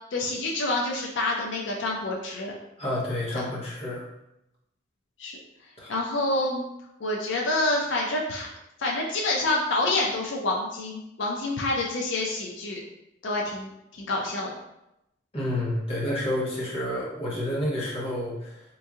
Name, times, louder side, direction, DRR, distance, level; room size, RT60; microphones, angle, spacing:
voice 1, 0.1-2.5 3.4-3.5 5.2-5.4 5.9-6.7 7.0-8.5 8.8-12.8 13.2-14.5, left 2 dB, 80° left, -1 dB, 0.6 m, -27 dB
voice 2, 2.8-4.0 5.8-5.9 15.3-18.6, left 1 dB, 30° left, -6 dB, 1.0 m, -29 dB
3.1 x 2.6 x 3.5 m, 0.87 s
head